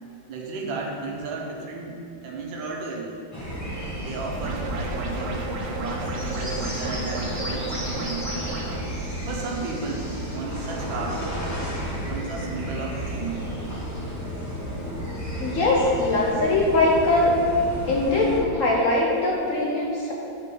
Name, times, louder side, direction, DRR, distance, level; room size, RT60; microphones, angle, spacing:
voice 1, 0.3-2.0 2.2-3.2 4.0-8.3 9.3-11.2 12.0-13.4, right 4 dB, 90° right, -1 dB, 1.6 m, -34 dB
sound 1, 3.3-18.4, equal, 15° left, 0.6 m, -32 dB
sound 2, 4.4-8.8, right 2 dB, 65° right, 1.0 m, -32 dB
voice 2, 15.4-17.4 17.9-20.1, left 2 dB, 60° left, -3 dB, 0.9 m, -21 dB
6.8 x 5.0 x 3.8 m, 2.4 s
omnidirectional pair, 2.0 m